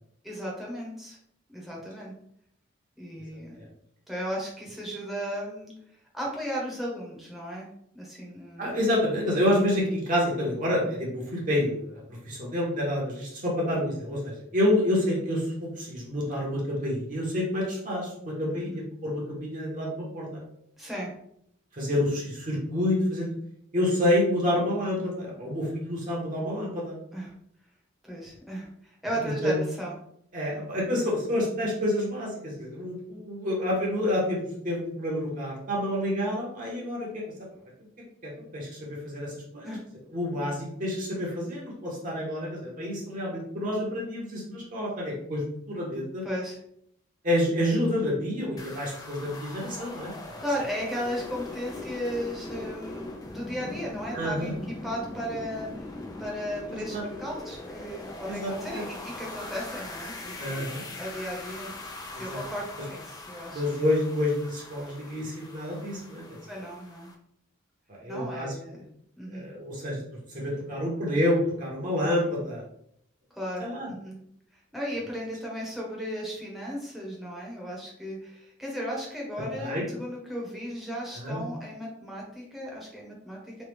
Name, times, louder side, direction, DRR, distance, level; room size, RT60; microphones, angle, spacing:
voice 1, 0.2-1.2 1.5-2.1 3.0-3.6 4.1-5.7 6.1-7.7 7.9-8.8 18.5-18.8 20.8-21.1 27.1-27.3 28.0-30.0 39.6-39.8 46.2-46.6 50.4-55.9 56.2-60.7 61.0-61.7 62.2-63.6 66.5-67.1 68.1-68.8 69.2-69.5 73.3-74.2 74.5-83.6, equal, ahead, -4 dB, 0.9 m, -35 dB
voice 2, 8.6-20.4 21.7-23.3 23.7-27.0 29.4-29.5 30.3-37.2 38.2-39.8 40.1-46.2 47.2-50.1 54.1-54.5 56.7-57.0 58.3-58.8 60.4-60.8 62.3-62.4 63.5-66.2 68.0-68.6 69.3-70.0 70.3-72.6 73.6-73.9 79.5-79.8 81.2-81.4, left 1 dB, 40° right, -3 dB, 0.9 m, -28 dB
sound 1, 48.6-67.1, left 2 dB, 20° left, 0.3 m, -41 dB
3.1 x 2.3 x 3.3 m, 0.70 s
head